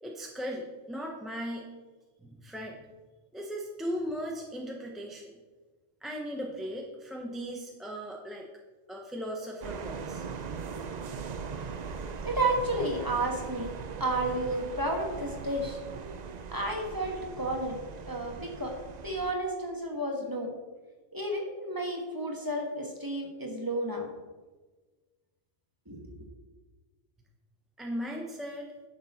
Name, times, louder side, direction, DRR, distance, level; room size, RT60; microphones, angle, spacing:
voice 1, 0.0-1.7 2.2-2.8 3.3-5.3 6.0-8.5 8.9-10.3 27.8-28.7, equal, ahead, -1 dB, 0.8 m, -37 dB
sound 1, 9.6-19.3, right 5 dB, 50° right, 0.5 m, -40 dB
voice 2, 12.2-13.7 14.0-15.8 16.5-17.8 18.1-18.7 19.0-20.5 21.1-24.1 25.9-26.1, right 1 dB, 20° right, 0 dB, 1.5 m, -31 dB
10.5 x 6.7 x 4.3 m, 1.3 s
omnidirectional pair, 1.2 m